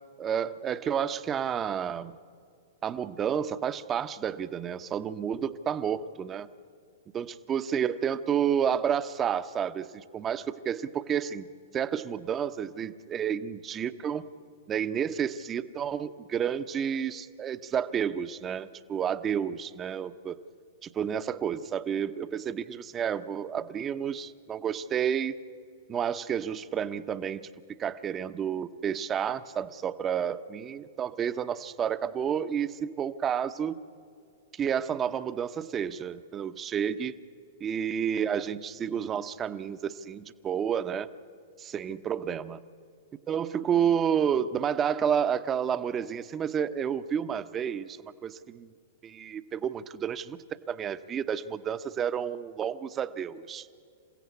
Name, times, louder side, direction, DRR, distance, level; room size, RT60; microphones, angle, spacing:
voice 1, 0.2-2.1 2.8-6.5 7.1-11.5 11.7-14.3 14.7-20.4 20.8-25.3 25.9-33.8 34.5-37.1 37.6-41.1 41.6-42.6 43.3-48.7 49.0-50.4 50.7-53.7, right 8 dB, 25° right, 12 dB, 0.9 m, -30 dB
28.0 x 15.5 x 8.3 m, 2.4 s
hypercardioid pair, 110°, 0 cm